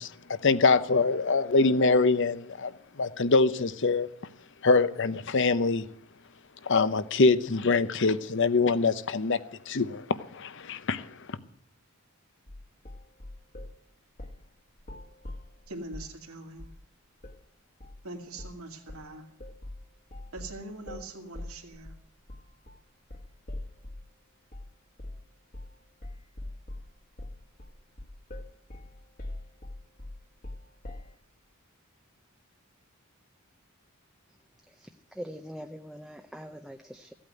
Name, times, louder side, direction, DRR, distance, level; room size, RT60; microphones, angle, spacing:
voice 1, 0.0-4.1 4.6-5.9 6.6-11.4, left 3 dB, 55° left, 0.8 m, -24 dB
sound 1, 12.5-13.8 14.2-14.5 14.8-16.2 16.6-16.8 17.2-17.4 17.8-18.0 18.4-18.6 18.9-24.1 24.5-24.7 25.0-25.3 25.5-25.8 26.0-31.2, left 1 dB, 40° left, 1.6 m, -43 dB
voice 2, 15.7-16.7 18.0-19.3 20.3-21.9, right 2 dB, 75° right, 2.2 m, -42 dB
voice 3, 34.7-37.1, equal, ahead, 0.6 m, -43 dB
15.5 x 8.8 x 9.2 m
head